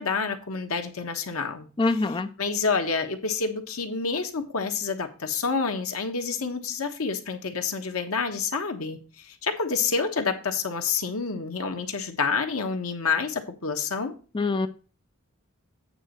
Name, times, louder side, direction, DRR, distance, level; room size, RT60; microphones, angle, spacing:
voice 1, 0.0-14.1, left 5 dB, 80° left, 5 dB, 1.2 m, -28 dB
voice 2, 1.8-2.3 14.3-14.7, left 3 dB, 20° left, 11 dB, 0.4 m, -24 dB
8.8 x 4.0 x 6.5 m, 0.36 s
head